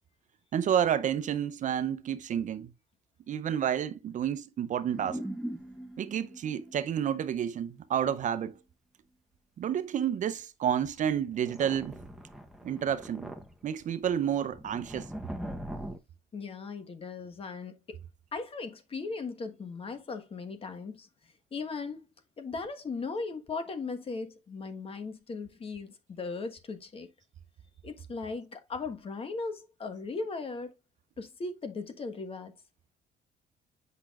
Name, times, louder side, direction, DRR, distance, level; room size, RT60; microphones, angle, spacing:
voice 1, 0.5-2.7 3.3-5.2 6.0-8.6 9.6-12.0 12.6-13.3 13.6-15.1, right 9 dB, 50° right, 0.6 m, -30 dB
sound 1, 4.9-7.3 7.5-7.6 11.0-16.0, right 1 dB, ahead, 0.9 m, -41 dB
voice 2, 16.3-18.0 18.3-21.1 21.5-22.0 22.4-27.1 27.8-30.7 31.2-32.5, left 4 dB, 35° left, 1.3 m, -38 dB
8.2 x 5.8 x 2.4 m
cardioid pair, 110°, 17 cm